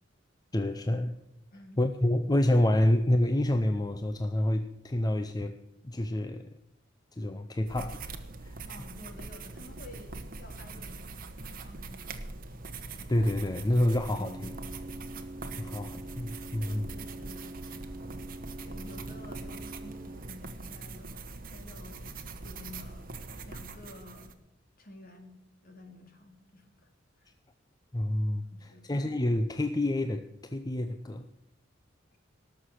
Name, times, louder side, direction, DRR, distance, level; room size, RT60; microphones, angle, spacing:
voice 1, 0.5-1.1 1.8-5.6 5.8-6.5 7.1-8.0 8.4-8.6 13.1-14.6 15.6-16.9 27.9-31.2, left 1 dB, 20° left, 8 dB, 0.5 m, -28 dB
sound 1, 7.7-24.3, right 3 dB, 45° right, 1.2 m, -43 dB
voice 2, 8.7-11.0 11.4-12.6 16.6-17.5 18.6-22.2 22.4-23.1 23.4-24.3 24.8-25.4 25.6-26.9 27.2-27.3 28.5-28.9 32.1-32.2, left 1 dB, 50° left, 4 dB, 2.5 m, -51 dB
Organ, 12.5-22.6, right 1 dB, 20° right, 0.7 m, -46 dB
18.5 x 6.6 x 7.7 m, 0.86 s
head